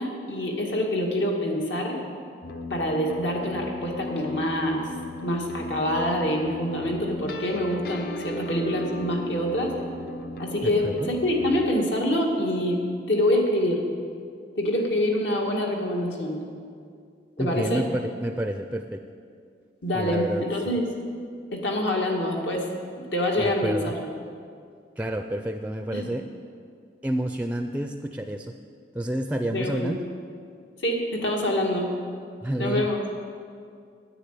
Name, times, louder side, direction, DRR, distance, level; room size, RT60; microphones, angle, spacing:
voice 1, 0.0-2.0 2.7-4.8 5.2-9.7 10.4-13.8 14.6-16.4 17.4-17.8 19.8-20.9 21.5-22.7 22.9-24.1 25.9-26.1 29.5-29.9 30.8-31.9 32.6-33.0, left 1 dB, 80° left, 0 dB, 2.1 m, -26 dB
sound 1, 2.4-11.7, left 2 dB, 55° left, 0.6 m, -36 dB
voice 2, 17.4-19.0 19.9-20.8 23.4-23.9 25.0-26.2 27.0-28.5 28.9-30.0 32.4-32.9, right 1 dB, 10° right, 6 dB, 0.4 m, -29 dB
10.0 x 9.9 x 8.3 m, 2.2 s
head